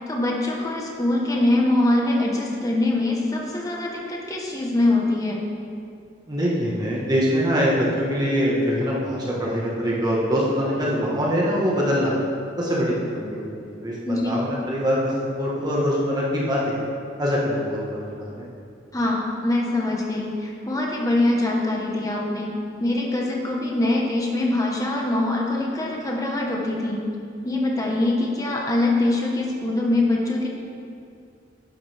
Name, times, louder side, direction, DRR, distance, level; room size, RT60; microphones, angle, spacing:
voice 1, 0.1-5.4 14.0-14.3 18.9-22.5 22.8-27.0 27.4-30.5, left 2 dB, 20° left, -2 dB, 1.4 m, -23 dB
voice 2, 6.3-12.1 12.6-16.7 17.2-18.5, equal, 20° right, -5 dB, 1.6 m, -23 dB
12.5 x 11.0 x 3.6 m, 2.4 s
head